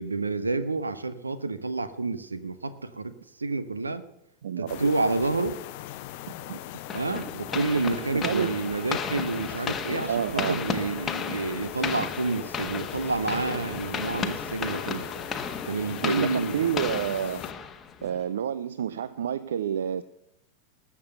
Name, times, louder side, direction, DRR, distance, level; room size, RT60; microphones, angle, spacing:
voice 1, 0.0-3.1 3.4-4.0 4.6-5.6 6.9-15.1 15.6-16.7, right 3 dB, 80° right, 12 dB, 1.1 m, -29 dB
voice 2, 4.4-4.9 6.5-6.6 8.2-8.5 10.1-10.6 16.0-17.5 18.0-20.0, right 9 dB, 65° right, 15 dB, 0.5 m, -29 dB
sound 1, 4.7-17.5, left 15 dB, 45° left, 0.7 m, -40 dB
sound 2, 6.9-18.2, left 6 dB, 20° left, 1.3 m, -34 dB
sound 3, 10.3-16.6, right 1 dB, 15° right, 3.5 m, -46 dB
19.5 x 7.4 x 6.9 m, 0.80 s
figure-of-eight pair, 90°, 0 cm